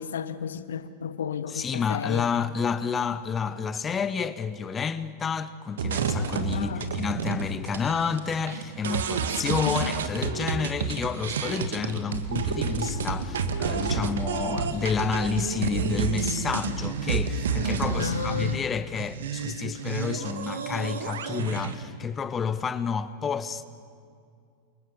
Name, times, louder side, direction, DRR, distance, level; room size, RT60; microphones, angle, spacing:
voice 1, 0.0-2.3 6.5-6.9 9.5-10.0 17.9-18.6, left 7 dB, 65° left, 1.0 m, -33 dB
voice 2, 1.5-23.6, left 6 dB, 20° left, 0.9 m, -30 dB
sound 1, 5.8-18.6 19.0-21.7, right 5 dB, 60° right, 1.9 m, -30 dB
29.0 x 26.0 x 6.9 m
figure-of-eight pair, 90°, 0 cm